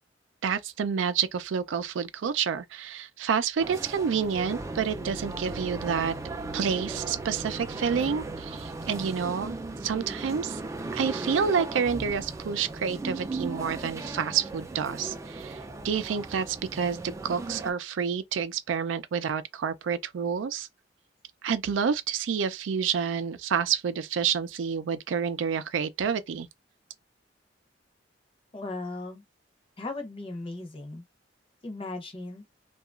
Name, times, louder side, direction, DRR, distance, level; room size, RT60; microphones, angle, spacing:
voice 1, 0.4-6.1 6.5-9.5 9.8-10.6 10.9-20.7 21.4-26.5, right 7 dB, 85° right, 0.4 m, -29 dB
sound 1, 3.6-17.7, right 2 dB, 15° right, 0.3 m, -37 dB
voice 2, 28.5-29.2 29.8-31.0 31.6-32.4, left 2 dB, 30° left, 0.7 m, -37 dB
2.8 x 2.3 x 2.4 m
head